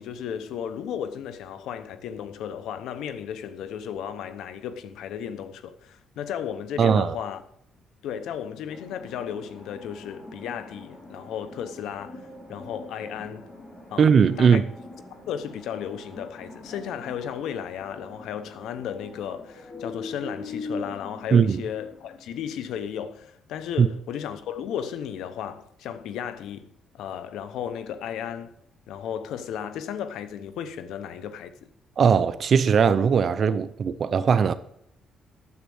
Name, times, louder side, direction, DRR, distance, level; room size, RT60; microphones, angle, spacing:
voice 1, 0.0-7.4 8.0-12.2 12.5-13.5 13.9-14.1 14.4-14.6 15.2-26.7 26.9-28.5 28.9-31.5, left 9 dB, 85° left, 0.9 m, -34 dB
voice 2, 6.8-7.2 14.0-14.6 21.3-21.6 23.8-23.9 32.0-34.5, right 6 dB, 50° right, 0.6 m, -19 dB
sound 1, 8.7-22.2, left 2 dB, 30° left, 3.0 m, -42 dB
9.7 x 7.4 x 7.1 m
cardioid pair, 95°, 0 cm